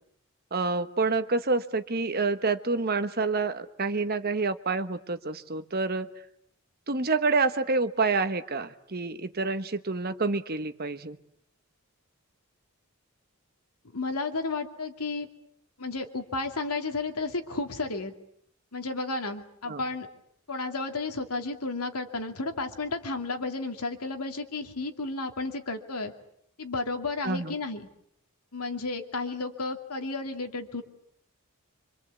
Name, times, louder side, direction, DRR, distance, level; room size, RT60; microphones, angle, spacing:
voice 1, 0.5-6.1 6.9-11.2 19.7-19.8 27.2-27.5, right 3 dB, 45° right, 11 dB, 1.3 m, -28 dB
voice 2, 13.9-15.3 15.8-18.1 18.7-20.1 20.5-26.1 26.6-27.9 28.5-30.8, left 3 dB, 85° left, 6 dB, 2.6 m, -32 dB
26.0 x 25.5 x 8.4 m, 0.72 s
head